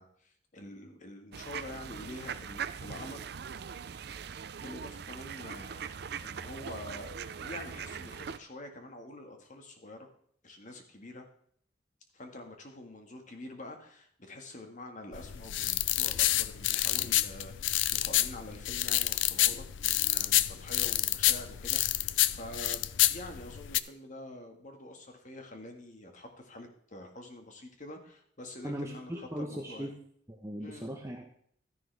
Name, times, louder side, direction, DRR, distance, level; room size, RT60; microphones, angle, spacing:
voice 1, 0.0-3.2 4.6-7.1 7.4-10.1 10.4-11.2 12.1-22.8 23.1-29.9 30.6-30.9, left 1 dB, 45° left, 4 dB, 1.7 m, -46 dB
sound 1, 1.3-8.4, right 7 dB, 60° right, 0.5 m, -41 dB
sound 2, 15.1-23.8, left 15 dB, 90° left, 0.4 m, -28 dB
voice 2, 28.6-29.9 30.3-31.2, equal, 15° right, 1 dB, 1.0 m, -38 dB
13.0 x 10.5 x 3.4 m, 0.64 s
head